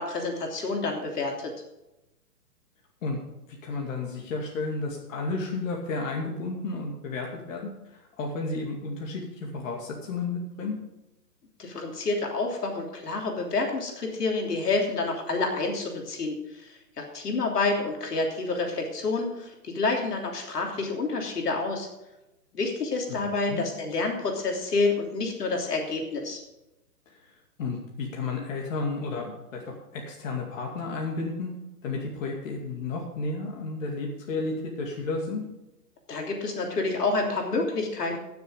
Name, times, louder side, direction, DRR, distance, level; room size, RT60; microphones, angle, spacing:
voice 1, 0.0-1.5 11.6-16.4 17.0-21.9 22.5-26.4 36.1-38.2, left 3 dB, 75° left, 1 dB, 3.2 m, -28 dB
voice 2, 3.6-10.8 23.1-23.2 23.5-23.6 27.1-27.3 27.6-31.5 31.8-35.4, left 3 dB, 50° left, -1 dB, 2.5 m, -32 dB
15.5 x 7.1 x 5.0 m, 0.95 s
hypercardioid pair, 145°, 48 cm